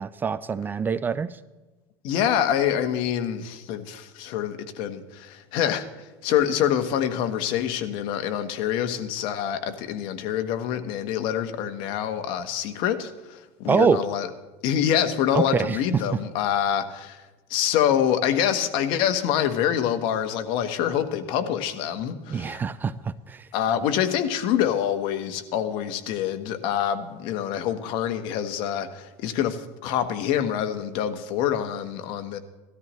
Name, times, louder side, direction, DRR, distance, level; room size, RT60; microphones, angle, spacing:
voice 1, 0.0-1.4 13.7-14.0 15.3-16.0 22.3-23.5, right 6 dB, 20° right, 15 dB, 0.4 m, -25 dB
voice 2, 2.0-14.3 14.6-17.2 17.5-22.6 23.5-32.4, left 9 dB, 60° left, 9 dB, 1.2 m, -26 dB
18.5 x 13.0 x 3.1 m, 1.2 s
supercardioid pair, 130°, 9 cm